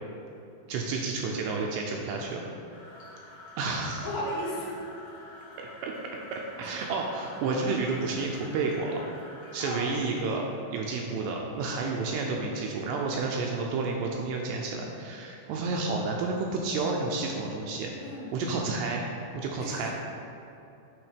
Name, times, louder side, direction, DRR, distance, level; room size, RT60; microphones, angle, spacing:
voice 1, 0.7-2.5 3.6-4.1 5.8-5.9 6.3-9.0 9.5-17.9 18.3-19.1 19.3-19.9, right 3 dB, 80° right, 0 dB, 2.5 m, -30 dB
sound 1, 2.7-9.7, left 1 dB, 60° left, 2.1 m, -48 dB
voice 2, 4.0-4.8 9.6-10.0 18.0-18.7 19.6-19.9, left 1 dB, 75° left, -4 dB, 3.3 m, -35 dB
8.8 x 3.6 x 5.0 m, 2.8 s
omnidirectional pair, 5.2 m